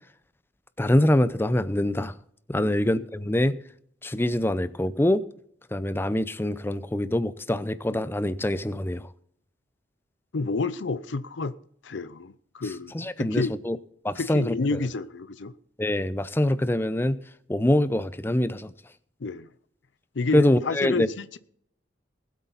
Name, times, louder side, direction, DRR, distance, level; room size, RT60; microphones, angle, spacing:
voice 1, 0.8-2.1 2.5-3.5 4.0-5.2 5.7-9.1 12.9-13.8 14.0-14.8 15.8-17.2 17.5-18.7 20.3-21.1, left 1 dB, 10° left, 0.5 m, -24 dB
voice 2, 10.3-11.5 11.8-13.5 14.2-15.5 19.2-19.5 20.2-21.4, left 3 dB, 70° left, 0.6 m, -30 dB
20.0 x 8.3 x 4.0 m
head